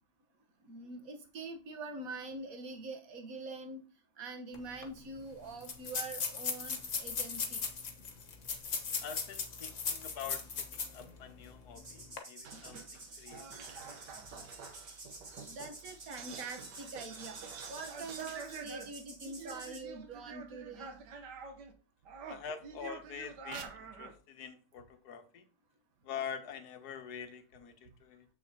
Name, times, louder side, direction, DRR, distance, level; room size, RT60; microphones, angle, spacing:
voice 1, 0.6-3.8 4.2-7.7 15.5-17.4 17.7-21.0, right 3 dB, 60° right, 1.5 m, -44 dB
sound 1, 4.5-4.6 4.8-4.9 5.6-11.0 11.4-11.5 12.0-12.2, left 5 dB, 50° left, 1.4 m, -37 dB
voice 2, 9.0-13.6 18.4-18.5 22.3-25.4 26.0-28.3, left 7 dB, 70° left, 1.3 m, -45 dB
sound 2, 11.7-19.8, right 2 dB, 30° right, 2.0 m, -51 dB
sound 3, 12.4-21.7 22.0-24.1, right 5 dB, 80° right, 1.6 m, -48 dB
7.4 x 6.5 x 2.8 m
omnidirectional pair, 1.8 m